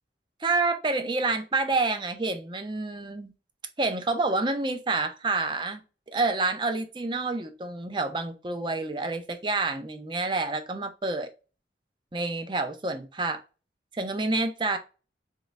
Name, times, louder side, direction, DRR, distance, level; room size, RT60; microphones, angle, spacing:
voice 1, 0.4-3.3 3.8-5.8 6.1-11.3 12.1-13.4 13.9-14.8, right 3 dB, 25° right, 0.5 m, -28 dB
3.8 x 3.1 x 3.1 m
head